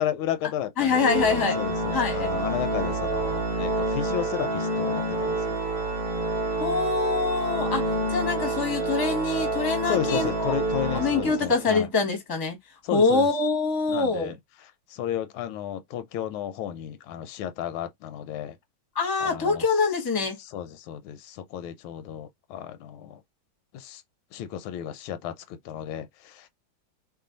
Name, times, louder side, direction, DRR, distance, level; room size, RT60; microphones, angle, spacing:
voice 1, 0.0-5.6 9.9-11.9 12.8-13.3 13.9-14.4 14.9-18.6 19.2-19.6 20.4-23.2 23.7-24.0 24.3-26.5, left 10 dB, 85° left, 1.5 m, -33 dB
voice 2, 0.8-1.6 1.9-2.3 6.6-7.8 8.1-10.5 10.9-12.6 12.9-14.3 18.9-20.4, left 4 dB, 15° left, 0.8 m, -24 dB
Organ, 0.9-11.8, right 2 dB, 50° right, 0.7 m, -28 dB
3.1 x 2.6 x 3.8 m
omnidirectional pair, 2.2 m